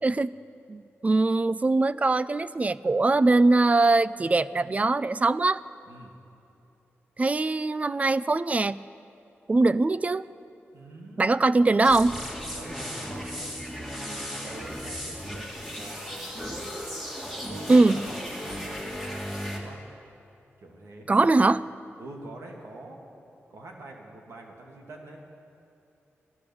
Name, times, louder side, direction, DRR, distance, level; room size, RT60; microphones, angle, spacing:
voice 1, 0.0-0.4 0.7-5.6 7.2-8.8 9.5-10.2 11.2-12.2 17.7-18.0 21.1-21.6, right 3 dB, 30° right, 17 dB, 0.4 m, -22 dB
voice 2, 10.7-11.3 12.5-16.8 17.2-19.8 20.6-21.4 22.0-23.0 23.5-25.2, right 2 dB, 80° right, 1 dB, 2.0 m, -45 dB
sound 1, 11.8-19.6, equal, 5° right, 2.7 m, -36 dB
16.0 x 12.5 x 7.0 m, 3.0 s
cardioid pair, 75°, 5 cm